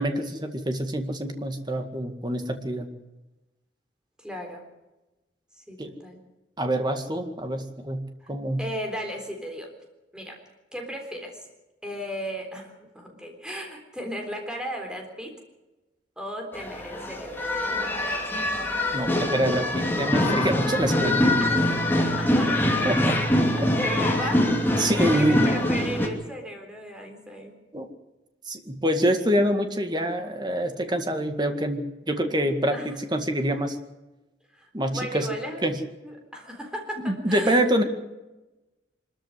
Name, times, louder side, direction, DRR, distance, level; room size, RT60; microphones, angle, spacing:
voice 1, 0.0-2.9 5.8-5.9 6.6-8.6 18.9-21.3 22.8-23.2 23.6-23.7 24.8-25.5 27.7-27.9 28.5-33.8 34.7-35.3 35.6-35.8 37.0-37.8, right 1 dB, 25° right, 6 dB, 2.0 m, -26 dB
voice 2, 4.2-4.6 5.6-6.2 8.2-8.3 8.6-9.7 10.1-10.4 10.7-11.5 11.8-15.4 16.2-18.6 21.4-23.1 23.6-24.5 25.0-27.6 32.6-32.9 34.5-35.7 36.0-37.8, equal, 5° right, 2 dB, 3.8 m, -36 dB
sound 1, 16.5-26.1, left 1 dB, 10° left, 2.9 m, -24 dB
24.5 x 13.5 x 8.1 m, 1.1 s
head